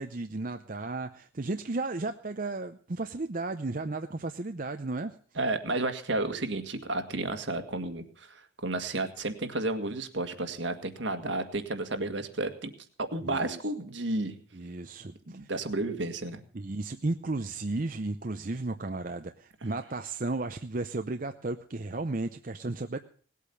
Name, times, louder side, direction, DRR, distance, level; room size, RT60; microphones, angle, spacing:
voice 1, 0.0-5.1 13.3-13.5 14.5-15.4 16.5-23.0, right 2 dB, 45° right, 7 dB, 0.7 m, -34 dB
voice 2, 5.3-12.7 13.0-14.3 15.3-16.4, right 2 dB, 70° right, 7 dB, 1.8 m, -32 dB
19.0 x 8.4 x 7.0 m, 0.44 s
head